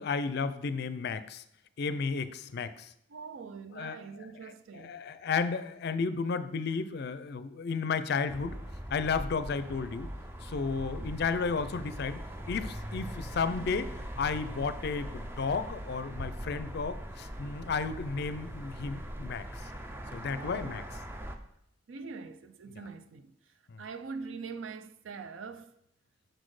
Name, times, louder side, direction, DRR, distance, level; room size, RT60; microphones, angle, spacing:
voice 1, 0.0-1.4 1.8-2.9 3.7-4.0 4.7-8.6 8.9-10.1 10.4-12.2 12.5-13.9 14.2-19.5 20.1-20.8 23.7-23.8, left 5 dB, 55° left, 0.4 m, -33 dB
voice 2, 3.1-5.0 11.0-11.1 20.2-20.9 21.9-23.3 23.8-25.7, right 5 dB, 85° right, 0.5 m, -43 dB
sound 1, 8.3-21.4, equal, 10° right, 0.4 m, -41 dB
sound 2, 9.8-19.9, left 1 dB, 60° right, 2.0 m, -55 dB
6.4 x 4.2 x 4.8 m
head